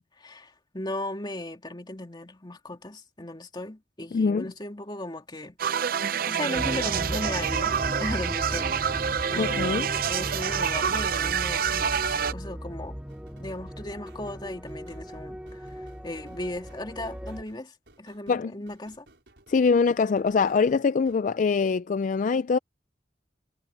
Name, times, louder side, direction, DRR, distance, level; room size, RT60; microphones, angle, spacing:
voice 1, 0.2-5.6 6.3-13.0 13.4-19.1, left 1 dB, 25° left, 2.7 m, -37 dB
voice 2, 4.1-4.5 9.4-9.9 18.3-18.5 19.5-22.6, left 5 dB, 45° left, 0.3 m, -23 dB
sound 1, 5.6-12.3, right 7 dB, 55° right, 0.5 m, -27 dB
sound 2, 6.5-17.4, equal, 5° right, 0.9 m, -37 dB
sound 3, 13.1-21.3, right 2 dB, 75° right, 6.1 m, -58 dB
head